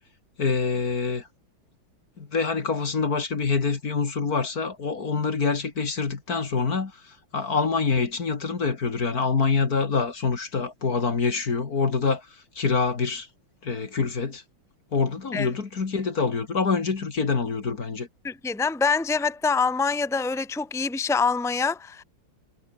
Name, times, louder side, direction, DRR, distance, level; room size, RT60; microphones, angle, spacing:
voice 1, 0.4-1.3 2.2-6.9 7.3-12.2 12.6-13.3 13.6-14.4 14.9-18.1, left 4 dB, 50° left, 2.6 m, -25 dB
voice 2, 18.2-22.0, left 5 dB, ahead, 1.6 m, -25 dB
omnidirectional pair, 2.2 m